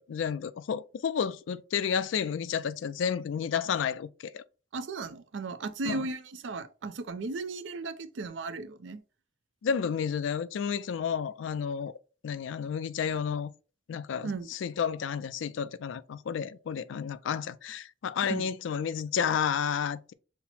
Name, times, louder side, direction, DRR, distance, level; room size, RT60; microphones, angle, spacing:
voice 1, 0.0-4.4 5.9-6.1 9.6-11.9 12.2-13.5 13.9-20.1, left 7 dB, 85° left, 0.3 m, -31 dB
voice 2, 4.7-9.0 14.2-14.5 18.3-18.5, right 3 dB, 75° right, 0.5 m, -36 dB
5.6 x 2.0 x 4.2 m
head